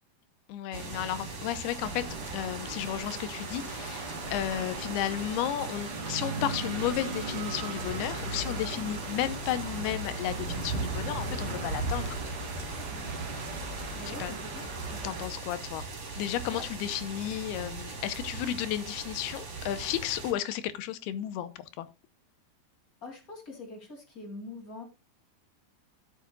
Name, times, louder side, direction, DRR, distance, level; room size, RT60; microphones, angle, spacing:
voice 1, 0.5-12.2 14.1-14.3 14.9-15.8 16.2-21.5 21.8-21.9, left 11 dB, 80° left, 2.7 m, -33 dB
sound 1, 0.7-20.3, right 3 dB, 35° right, 4.1 m, -39 dB
sound 2, 1.8-15.3, right 2 dB, 65° right, 0.9 m, -38 dB
voice 2, 13.9-14.7 16.5-16.6 23.0-24.8, left 2 dB, 25° left, 2.8 m, -43 dB
14.5 x 8.5 x 2.4 m
omnidirectional pair, 4.7 m